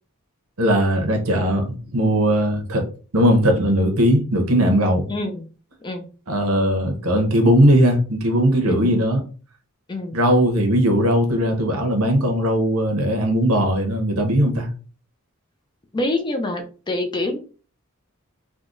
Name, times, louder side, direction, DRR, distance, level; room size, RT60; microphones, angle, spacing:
voice 1, 0.6-2.9 3.1-5.1 6.3-9.2 10.1-14.7, equal, 80° right, 0.8 m, -19 dB
voice 2, 5.1-5.4 5.8-6.0 8.6-9.0 9.9-10.2 15.9-17.4, left 2 dB, 20° left, 0.4 m, -26 dB
3.5 x 2.2 x 2.5 m
head